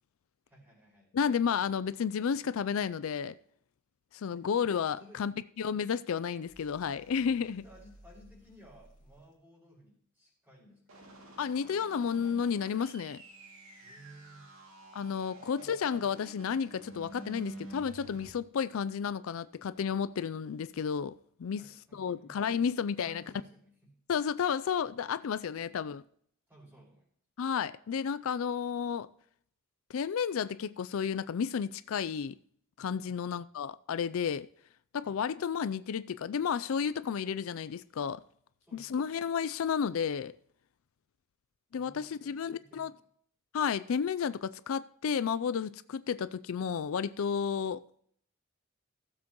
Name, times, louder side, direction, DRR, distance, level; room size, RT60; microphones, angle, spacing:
voice 1, 0.4-1.2 4.3-4.5 5.0-5.3 7.4-11.1 13.8-14.5 15.3-15.8 21.6-22.6 23.0-24.0 25.6-25.8 26.5-27.1 33.0-33.5 35.0-35.2 38.6-39.0 41.7-43.0, right 1 dB, 10° right, 5.2 m, -58 dB
voice 2, 1.1-3.4 4.1-5.3 5.6-7.6 11.4-13.2 14.9-21.6 21.9-23.2 24.1-26.0 27.4-29.1 29.9-32.4 32.8-34.5 34.9-38.2 38.7-40.3 41.7-42.9 43.5-48.0, left 7 dB, 70° left, 0.4 m, -32 dB
sound 1, 6.4-9.4, equal, 40° left, 3.3 m, -59 dB
sound 2, 10.9-18.3, right 2 dB, 65° right, 2.4 m, -50 dB
17.0 x 7.5 x 3.0 m
head